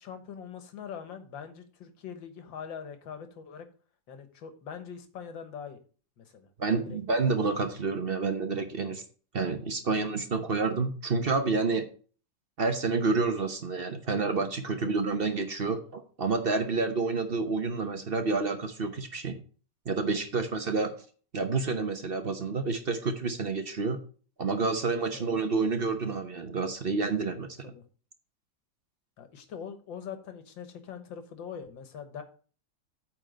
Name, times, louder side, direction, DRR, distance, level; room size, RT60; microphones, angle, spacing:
voice 1, 0.0-3.7 4.1-5.8 6.2-6.5 6.9-7.0 14.8-14.9 20.3-20.5 25.1-25.3 27.6-27.8 29.2-32.2, left 7 dB, 75° left, 9 dB, 1.9 m, -42 dB
voice 2, 6.6-9.0 9.3-11.9 12.6-19.4 19.9-20.9 21.3-24.0 24.4-27.7, right 4 dB, 45° right, 7 dB, 0.8 m, -29 dB
8.9 x 4.3 x 6.4 m, 0.40 s
omnidirectional pair, 2.1 m